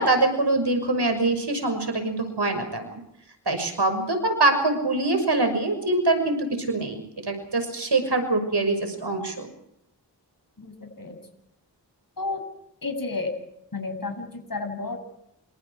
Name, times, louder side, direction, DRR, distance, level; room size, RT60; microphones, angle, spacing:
voice 1, 0.0-2.9 3.5-9.5, right 2 dB, 70° right, 7 dB, 6.2 m, -24 dB
voice 2, 10.6-11.2 12.2-12.4 12.8-13.3 13.7-15.0, left 3 dB, 55° left, 4 dB, 7.9 m, -31 dB
28.5 x 25.0 x 4.9 m, 0.78 s
wide cardioid pair, 45°, 42 cm